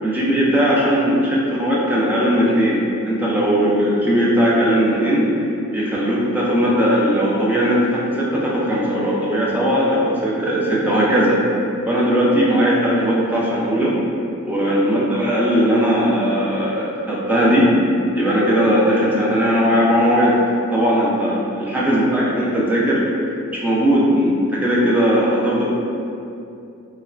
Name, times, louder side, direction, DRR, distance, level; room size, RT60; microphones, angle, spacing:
voice 1, 0.0-5.3 5.7-11.4 11.9-13.9 14.4-17.8 18.2-20.4 20.7-23.1 23.5-25.6, equal, 10° right, -6 dB, 0.4 m, -18 dB
3.2 x 2.2 x 2.3 m, 2.6 s
head